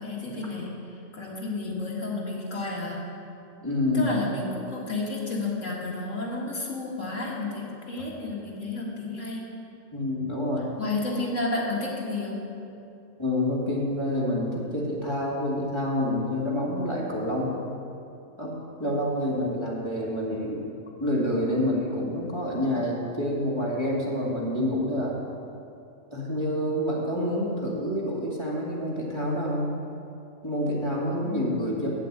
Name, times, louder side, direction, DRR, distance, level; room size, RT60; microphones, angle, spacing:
voice 1, 0.0-3.0 3.9-9.5 10.8-12.4 18.8-19.0 31.2-31.5, left 2 dB, 75° left, -3 dB, 2.4 m, -31 dB
voice 2, 3.6-4.1 9.9-10.6 13.2-17.6 18.4-18.5 18.8-20.6 21.0-25.1 26.1-29.7 30.4-31.9, left 1 dB, 20° left, -5 dB, 2.1 m, -27 dB
8.4 x 7.8 x 8.6 m, 2.6 s
omnidirectional pair, 1.3 m